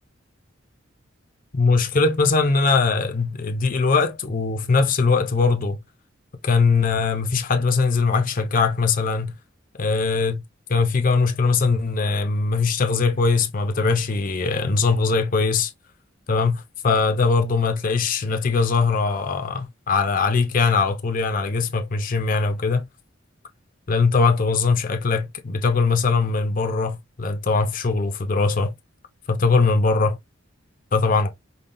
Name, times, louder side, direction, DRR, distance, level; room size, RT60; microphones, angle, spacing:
voice 1, 1.5-5.8 6.4-9.3 9.8-10.4 10.7-15.7 16.3-22.8 23.9-28.7 29.3-30.2 30.9-31.3, left 4 dB, 45° left, 0.6 m, -21 dB
5.3 x 2.3 x 2.5 m
head